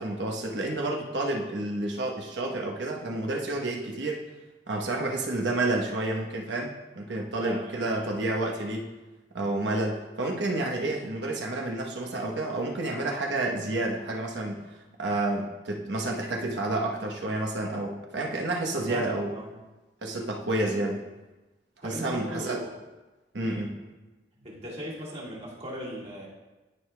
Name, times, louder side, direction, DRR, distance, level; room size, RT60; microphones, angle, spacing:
voice 1, 0.0-4.3 4.7-8.9 9.3-19.3 20.0-21.0 21.8-22.6 23.3-23.8, right 2 dB, 85° right, 1 dB, 1.0 m, -30 dB
voice 2, 7.4-8.2 18.9-19.5 20.6-20.8 21.8-22.7 23.4-23.7 24.4-26.3, equal, 40° right, -5 dB, 1.8 m, -38 dB
13.0 x 4.9 x 2.3 m, 1.1 s
head